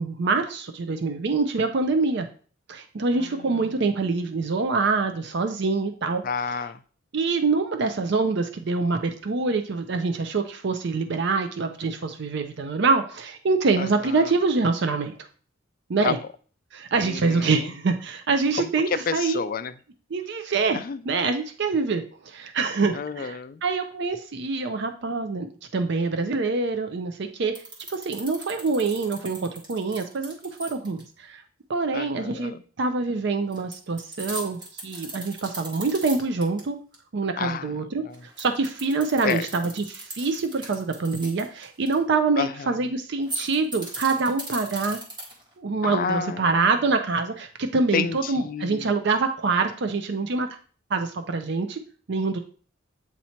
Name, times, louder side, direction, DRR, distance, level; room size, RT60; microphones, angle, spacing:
voice 1, 0.0-2.3 2.7-6.2 7.1-15.1 15.9-16.2 16.7-19.4 20.1-27.6 27.9-31.4 31.7-36.8 37.1-38.0 38.4-45.0 45.6-50.5 50.9-51.8 52.1-52.4, right 4 dB, 55° right, 7 dB, 0.5 m, -25 dB
voice 2, 3.1-3.9 6.2-6.8 13.8-14.3 16.0-16.2 17.1-17.7 18.6-19.7 20.7-21.0 22.9-23.6 31.9-32.6 37.4-38.2 39.2-39.5 42.4-42.8 45.8-46.6 47.9-48.9, left 6 dB, 40° left, 12 dB, 0.3 m, -30 dB
sound 1, 27.6-31.0 33.5-36.6 36.9-37.0 38.1-41.9 43.1-45.5, right 1 dB, 20° right, 1.4 m, -38 dB
8.2 x 2.8 x 4.3 m, 0.43 s
head